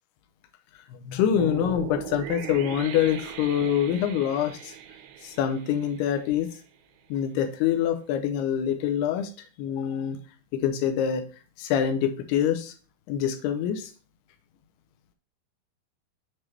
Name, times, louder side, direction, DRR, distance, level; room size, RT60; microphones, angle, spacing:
voice 1, 0.7-4.8 5.2-6.5 7.1-9.3 9.6-10.2 10.5-11.2 11.6-12.7 13.1-13.9, left 9 dB, 90° left, 6 dB, 2.6 m, -25 dB
sound 1, 1.4-6.6, right 11 dB, 85° right, 2.6 m, -39 dB
7.3 x 4.7 x 3.2 m, 0.38 s
omnidirectional pair, 4.5 m